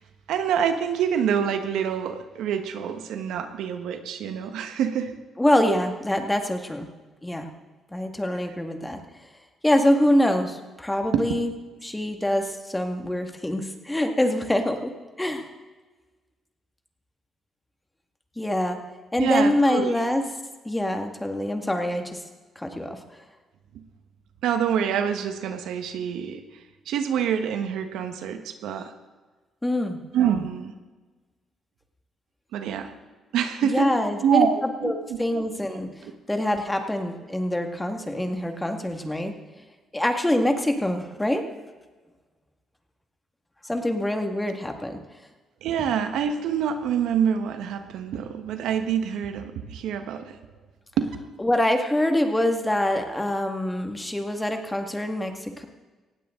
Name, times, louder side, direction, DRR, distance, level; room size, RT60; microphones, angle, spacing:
voice 1, 0.3-5.1 11.1-11.2 19.2-19.9 24.4-26.4 26.9-28.9 30.1-30.7 32.5-32.9 33.3-33.9 34.2-34.9 36.0-36.1 45.6-50.4 51.0-51.1, right 8 dB, 85° right, 7 dB, 1.4 m, -26 dB
voice 2, 5.4-6.9 7.2-7.5 7.9-9.0 9.6-11.5 11.8-14.9 15.2-15.5 18.4-18.8 19.1-20.3 20.6-22.2 22.6-23.0 29.6-30.0 33.6-35.9 36.3-39.3 39.9-41.4 43.6-45.0 51.4-55.6, left 1 dB, 10° left, 5 dB, 2.0 m, -25 dB
18.5 x 16.0 x 3.9 m, 1.3 s
cardioid pair, 90°, 0 cm